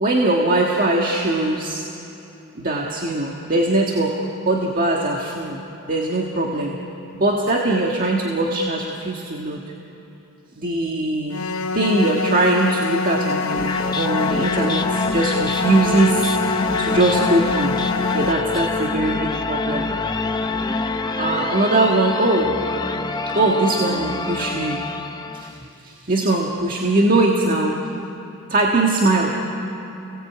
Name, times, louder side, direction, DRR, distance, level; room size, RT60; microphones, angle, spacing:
voice 1, 0.0-1.8 2.5-5.6 5.9-6.8 7.1-9.6 10.6-17.8 18.1-19.9 21.1-22.5 23.3-24.8 25.3-25.6 25.8-27.8 28.5-29.3, right 2 dB, 40° right, -1 dB, 1.6 m, -21 dB
sound 1, 11.3-18.3, left 4 dB, 65° left, 1.1 m, -25 dB
sound 2, 13.4-25.6, left 3 dB, 20° left, 0.8 m, -26 dB
30.0 x 18.0 x 8.5 m, 2.9 s
head